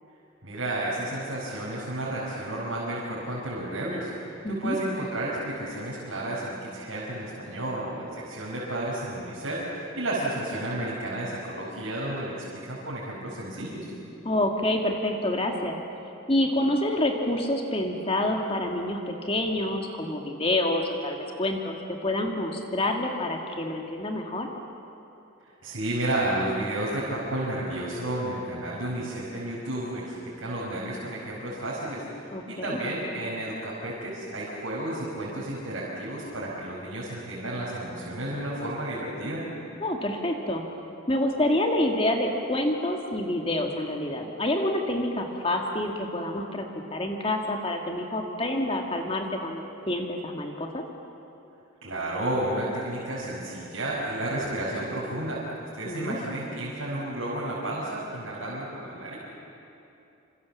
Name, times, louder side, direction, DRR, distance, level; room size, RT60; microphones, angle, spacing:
voice 1, 0.4-4.1 4.5-13.9 25.4-39.4 51.8-59.2, right 1 dB, 75° right, -7 dB, 5.4 m, -32 dB
voice 2, 4.4-4.8 14.2-15.8 16.3-24.5 32.3-32.8 39.8-40.6 41.1-50.8 55.8-56.2, left 1 dB, 25° left, 2 dB, 2.1 m, -27 dB
27.5 x 26.0 x 7.3 m, 2.8 s
head